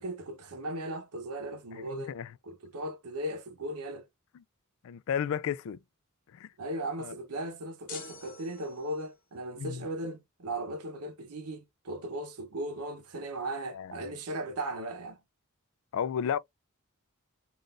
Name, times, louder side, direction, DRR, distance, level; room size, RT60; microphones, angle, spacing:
voice 1, 0.0-2.2 2.4-4.1 6.6-15.2, right 1 dB, 90° right, 0.8 m, -37 dB
voice 2, 4.8-5.8 6.3-6.5 7.0-7.1 9.6-9.8 13.7-13.9 15.9-16.4, left 8 dB, 65° left, 0.3 m, -32 dB
sound 1, 7.9-9.2, left 3 dB, 40° left, 0.8 m, -46 dB
3.8 x 2.5 x 2.4 m
head